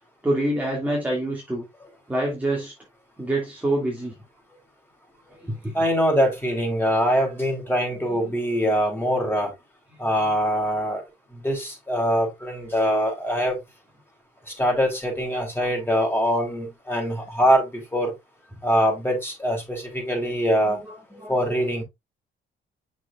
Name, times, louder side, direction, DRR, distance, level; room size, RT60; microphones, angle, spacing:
voice 1, 0.2-1.7 2.1-2.7 3.2-4.1 21.2-21.3, right 1 dB, 5° right, 2.6 m, -25 dB
voice 2, 5.7-9.5 10.0-11.0 11.3-13.6 14.5-18.1 18.6-20.8 21.3-21.8, equal, 10° left, 4.8 m, -23 dB
7.2 x 6.5 x 2.5 m
cardioid pair, 90°, 20 cm